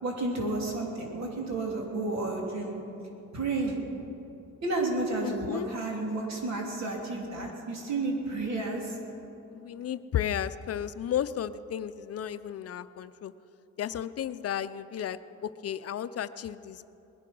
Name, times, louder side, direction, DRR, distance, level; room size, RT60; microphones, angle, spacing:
voice 1, 0.0-2.7 3.3-3.8 4.6-9.0, right 2 dB, 65° right, 0 dB, 3.6 m, -31 dB
voice 2, 5.2-5.7 9.5-13.3 13.8-16.9, left 10 dB, 55° left, 13 dB, 0.6 m, -33 dB
20.0 x 10.5 x 6.2 m, 2.9 s
cardioid pair, 90°, 30 cm